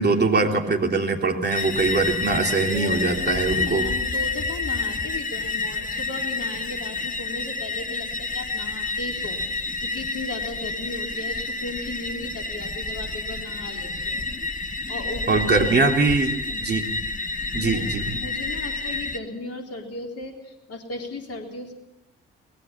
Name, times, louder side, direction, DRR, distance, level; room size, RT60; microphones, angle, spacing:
voice 1, 0.0-3.8 15.3-16.3 16.6-16.9 17.5-18.1, right 3 dB, 30° right, 2 dB, 3.4 m, -22 dB
sound 1, 1.5-19.2, left 3 dB, 25° left, 1.9 m, -29 dB
voice 2, 2.7-14.6 14.9-15.7 16.5-16.7 17.5-17.9 18.1-21.7, left 2 dB, 45° left, 3 dB, 3.9 m, -36 dB
24.5 x 19.5 x 5.9 m, 0.90 s
figure-of-eight pair, 40°, 33 cm